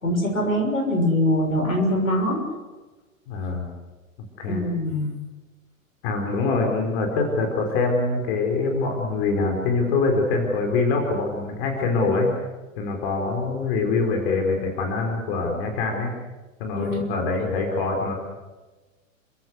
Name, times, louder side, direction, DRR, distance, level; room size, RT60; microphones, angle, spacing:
voice 1, 0.0-2.4 4.5-5.1 16.7-17.1, left 1 dB, 75° left, 2 dB, 6.5 m, -23 dB
voice 2, 3.3-3.7 4.4-4.6 6.0-12.3 12.8-16.1 16.6-18.1, left 3 dB, 45° left, 2 dB, 4.9 m, -24 dB
30.0 x 15.0 x 8.2 m, 1.2 s
figure-of-eight pair, 100°, 41 cm